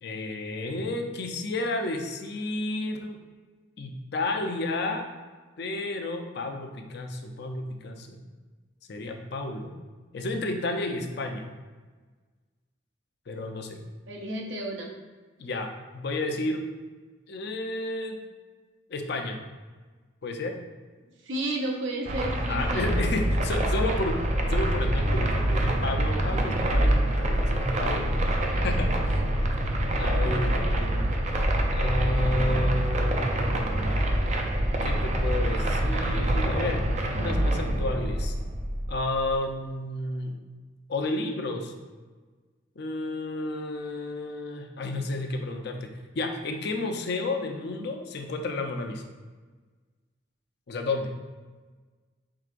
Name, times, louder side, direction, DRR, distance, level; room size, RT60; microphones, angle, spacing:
voice 1, 0.0-3.2 3.8-5.1 5.6-8.2 8.9-9.7 10.1-11.5 13.3-13.8 15.4-16.6 17.3-18.2 18.9-19.4 20.2-20.6 22.5-24.2 24.5-28.2 28.6-29.2 30.0-31.0 31.7-34.0 34.8-36.8 37.1-38.3 38.9-40.3 40.9-41.7 42.8-45.9 46.1-49.0 50.7-51.1, left 2 dB, 60° left, 4 dB, 0.5 m, -31 dB
voice 2, 14.1-14.9 21.2-22.9, right 1 dB, 75° right, 0 dB, 0.7 m, -32 dB
sound 1, 22.1-39.4, right 1 dB, 40° right, 0.4 m, -25 dB
4.8 x 3.8 x 2.5 m, 1.4 s
head